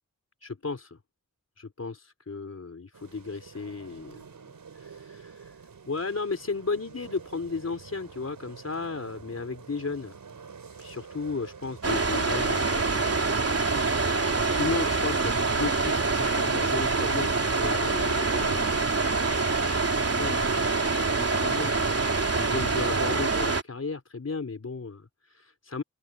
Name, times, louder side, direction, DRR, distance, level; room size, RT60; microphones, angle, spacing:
voice 1, 0.4-1.0 1.6-4.3 4.7-5.6 5.9-10.2 10.8-13.6 14.0-18.8 19.9-21.9 22.1-25.8, left 4 dB, 50° left, 3.9 m, -35 dB
sound 1, 2.9-21.0, right 6 dB, 90° right, 4.1 m, -46 dB
sound 2, 11.8-23.6, right 3 dB, 50° right, 3.4 m, -25 dB
open air
wide cardioid pair, 75°, 32 cm